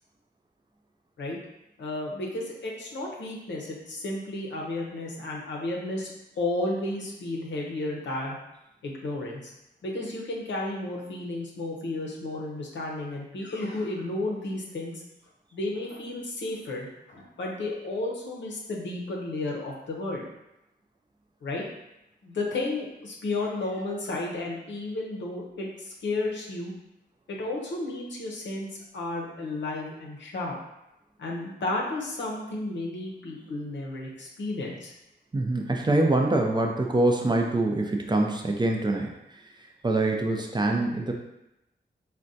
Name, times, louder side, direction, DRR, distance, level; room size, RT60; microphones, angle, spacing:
voice 1, 1.8-8.4 8.8-9.5 9.8-14.9 15.5-20.3 21.4-21.6 22.2-26.7 27.3-28.7 28.9-30.5 31.2-34.9, left 2 dB, 90° left, -2 dB, 0.6 m, -32 dB
voice 2, 35.3-39.1 39.8-41.1, right 2 dB, 25° right, 1 dB, 0.4 m, -24 dB
3.5 x 2.2 x 2.6 m, 0.89 s
wide cardioid pair, 75°, 18 cm